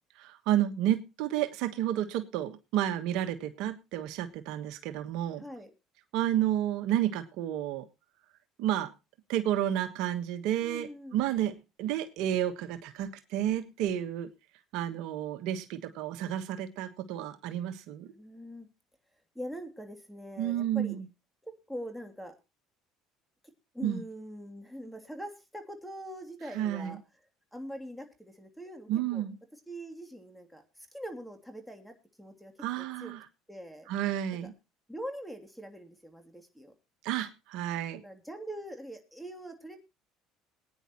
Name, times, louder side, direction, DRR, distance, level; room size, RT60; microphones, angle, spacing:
voice 1, 0.2-5.4 6.1-7.8 8.6-8.9 9.3-14.3 14.7-18.1 20.4-21.0 23.8-24.0 26.5-27.0 28.9-29.3 32.6-33.2 33.9-34.5 37.0-38.0, right 12 dB, 70° right, 9 dB, 1.3 m, -31 dB
voice 2, 5.4-5.7 10.6-11.2 18.1-18.7 19.3-21.0 21.4-22.3 23.7-27.0 27.5-29.2 29.5-32.5 32.8-33.1 33.5-33.9 34.9-36.7 38.0-39.8, equal, ahead, 5 dB, 3.0 m, -43 dB
21.0 x 9.7 x 3.0 m, 0.27 s
supercardioid pair, 90°, 0 cm